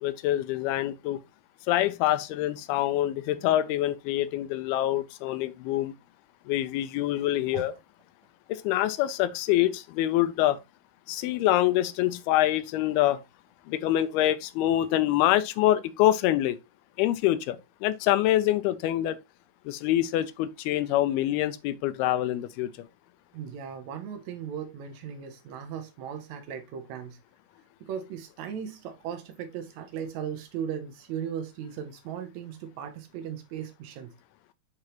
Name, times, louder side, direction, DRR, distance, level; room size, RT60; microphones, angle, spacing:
voice 1, 0.0-1.2 1.7-5.9 6.5-7.7 8.5-10.6 11.1-13.2 13.7-16.6 17.0-19.2 19.7-22.9, left 13 dB, 85° left, 2.5 m, -25 dB
voice 2, 23.3-27.2 27.8-34.1, right 8 dB, 80° right, 1.6 m, -37 dB
8.3 x 4.8 x 3.0 m
omnidirectional pair, 4.5 m